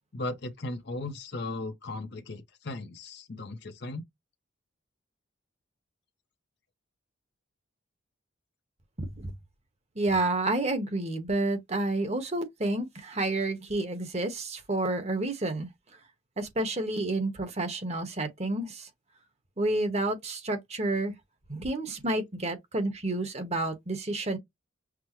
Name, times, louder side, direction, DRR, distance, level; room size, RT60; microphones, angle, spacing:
voice 1, 0.1-4.0, left 2 dB, 55° left, 0.8 m, -37 dB
voice 2, 9.0-9.3 10.0-15.7 16.4-18.9 19.6-21.1 21.5-24.4, right 2 dB, 30° right, 1.1 m, -30 dB
6.1 x 2.1 x 3.0 m
head